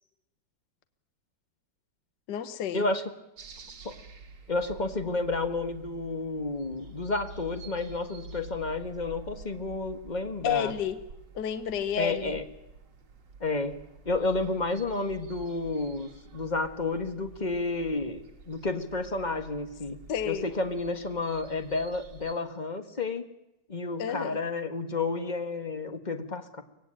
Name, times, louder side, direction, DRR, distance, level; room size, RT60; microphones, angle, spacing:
voice 1, 2.3-2.9 10.4-11.0 11.3-12.3 20.1-20.5 24.0-24.4, left 8 dB, 60° left, 10 dB, 1.6 m, -30 dB
sound 1, 3.4-22.3, right 3 dB, 65° right, 2.5 m, -48 dB
voice 2, 4.5-10.7 12.0-12.4 13.4-13.8 14.0-18.2 18.5-20.0 20.2-23.2 23.7-26.6, left 3 dB, 25° left, 6 dB, 1.5 m, -31 dB
24.0 x 19.0 x 9.0 m, 0.92 s
omnidirectional pair, 2.2 m